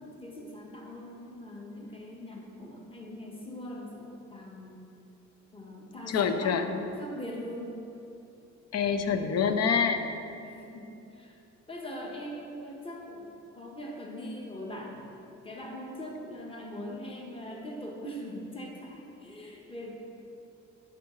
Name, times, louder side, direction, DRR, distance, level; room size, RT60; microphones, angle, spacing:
voice 1, 0.0-4.8 5.5-7.8 10.4-11.4 11.7-15.1 15.4-19.9, equal, 20° left, -1 dB, 1.2 m, -41 dB
voice 2, 6.1-6.7 8.7-10.0, left 6 dB, 55° left, 8 dB, 0.6 m, -26 dB
12.0 x 4.7 x 3.2 m, 2.8 s
cardioid pair, 90°, 30 cm